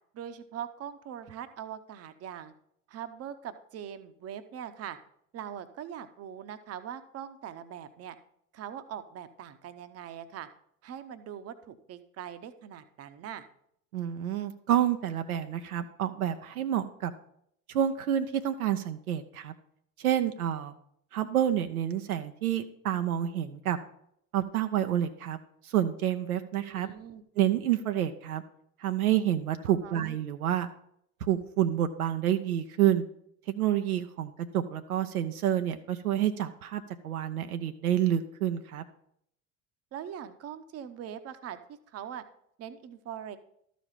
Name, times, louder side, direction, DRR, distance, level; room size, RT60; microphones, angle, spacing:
voice 1, 0.1-2.5 2.9-5.0 5.3-8.2 8.5-10.5 10.8-13.4 26.6-27.2 29.7-30.0 39.9-42.2 42.6-43.4, right 9 dB, 35° right, 11 dB, 0.8 m, -42 dB
voice 2, 13.9-17.1 17.7-19.5 20.0-20.7 21.1-23.8 24.3-25.4 25.6-26.9 27.4-28.4 28.8-30.7 31.2-33.0 33.5-38.8, right 11 dB, 75° right, 8 dB, 0.7 m, -28 dB
12.5 x 5.1 x 5.7 m, 0.71 s
figure-of-eight pair, 65°, 44 cm